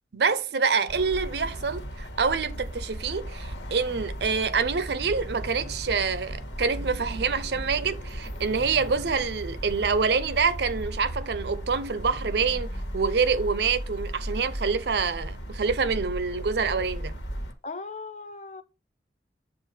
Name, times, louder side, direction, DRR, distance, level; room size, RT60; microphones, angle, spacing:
voice 1, 0.1-17.2, right 5 dB, 65° right, 0.6 m, -26 dB
sound 1, 0.9-17.5, right 1 dB, 90° left, 1.5 m, -36 dB
voice 2, 17.6-18.6, left 3 dB, 40° left, 0.6 m, -38 dB
7.4 x 2.6 x 5.4 m
head